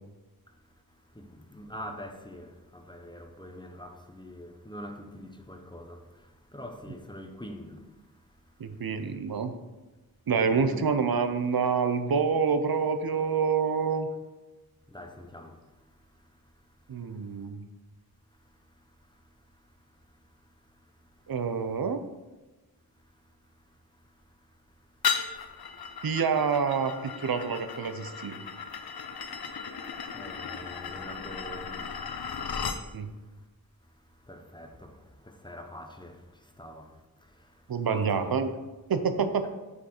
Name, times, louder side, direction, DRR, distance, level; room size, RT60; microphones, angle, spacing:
voice 1, 1.1-6.0 6.5-7.8 10.5-10.8 14.9-15.6 30.1-32.0 34.3-36.2 36.6-36.9 37.9-38.4, equal, 10° left, 1.0 m, -44 dB
voice 2, 8.6-9.5 10.3-14.1 16.9-17.6 21.3-22.0 26.0-28.4 32.9-33.1 37.7-38.5 38.9-39.5, right 5 dB, 70° right, 0.6 m, -27 dB
sound 1, 25.0-32.8, left 6 dB, 75° left, 0.7 m, -35 dB
8.0 x 5.8 x 4.4 m
wide cardioid pair, 70°, 37 cm